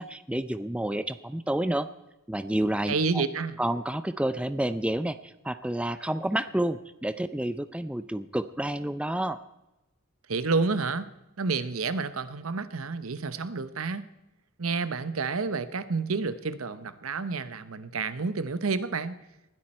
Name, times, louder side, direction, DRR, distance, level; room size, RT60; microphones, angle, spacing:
voice 1, 0.0-1.9 2.3-3.2 3.6-9.4, right 1 dB, 5° right, 12 dB, 0.5 m, -29 dB
voice 2, 2.9-3.6 10.3-11.1 11.4-14.1 14.6-19.2, right 4 dB, 85° right, 13 dB, 1.0 m, -29 dB
20.0 x 13.0 x 4.4 m, 0.96 s
head